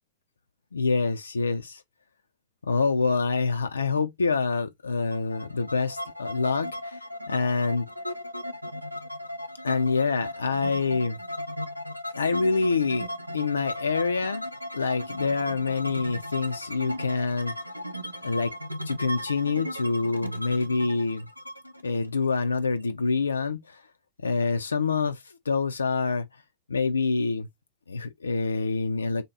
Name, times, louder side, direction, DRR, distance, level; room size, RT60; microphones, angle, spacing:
voice 1, 0.7-1.8 2.6-7.9 9.6-11.2 12.2-14.4 14.7-17.5 18.2-18.5 18.9-21.3 21.8-23.8 24.2-26.3 26.7-27.5 27.9-29.2, left 4 dB, 75° left, 0.3 m, -26 dB
sound 1, 5.1-22.8, left 1 dB, 85° right, 0.5 m, -36 dB
3.4 x 2.8 x 3.8 m
figure-of-eight pair, 90°, 0 cm